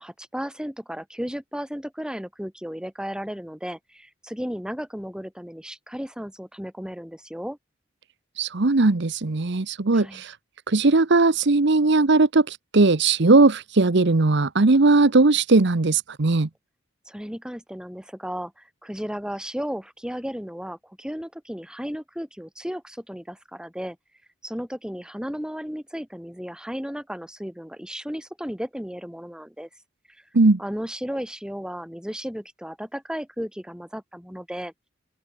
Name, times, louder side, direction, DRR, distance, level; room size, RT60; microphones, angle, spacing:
voice 1, 0.0-7.6 9.9-10.2 17.1-24.0 24.4-29.7 30.6-34.7, equal, 5° right, 2.6 m, -34 dB
voice 2, 8.4-10.3 10.7-16.5 30.3-30.6, right 3 dB, 65° right, 1.0 m, -19 dB
open air
head